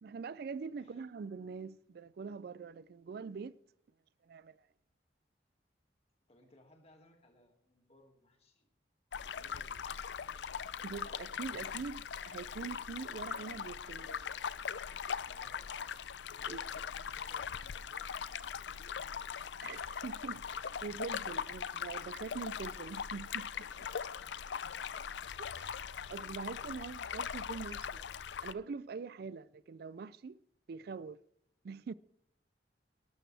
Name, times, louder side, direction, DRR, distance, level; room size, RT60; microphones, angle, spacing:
voice 1, 0.0-3.6 4.2-4.7 10.8-14.3 16.5-16.6 19.6-23.9 25.4-28.0 28.4-30.4 30.7-31.2 31.6-31.9, right 5 dB, 60° right, 0.4 m, -44 dB
voice 2, 6.3-8.7 9.2-10.0 15.2-15.9 16.3-19.2 25.2-25.3, left 1 dB, 35° left, 2.2 m, -64 dB
sound 1, 9.1-28.5, left 7 dB, 75° left, 0.5 m, -41 dB
19.0 x 12.0 x 3.4 m
head